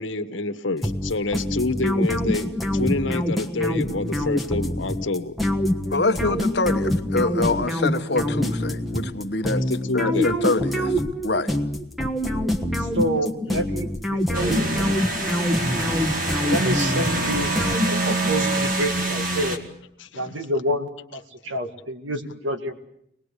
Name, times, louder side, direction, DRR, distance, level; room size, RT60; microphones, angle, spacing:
voice 1, 0.0-5.3 9.5-10.3 20.0-20.4 21.4-21.6, left 2 dB, 85° left, 10 dB, 1.3 m, -28 dB
sound 1, 0.8-18.3, left 1 dB, ahead, 1.3 m, -25 dB
voice 2, 5.9-9.6 9.9-11.6, left 2 dB, 60° left, 8 dB, 1.2 m, -25 dB
voice 3, 12.8-15.1 16.4-17.5 17.9-19.6 20.1-22.7, right 1 dB, 85° right, 7 dB, 2.0 m, -28 dB
sound 2, 14.3-19.6, right 2 dB, 45° right, 2.2 m, -26 dB
24.5 x 19.5 x 8.3 m, 0.73 s
head